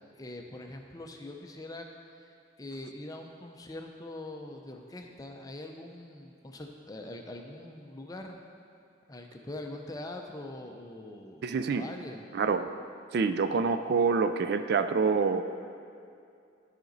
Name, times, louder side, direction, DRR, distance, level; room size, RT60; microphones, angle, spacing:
voice 1, 0.1-1.9 2.6-8.4 9.1-12.2, left 1 dB, 20° left, 3 dB, 0.5 m, -43 dB
voice 2, 11.4-11.9 12.3-12.7 13.1-15.4, right 5 dB, 55° right, 9 dB, 0.3 m, -26 dB
13.0 x 5.1 x 4.0 m, 2.4 s
head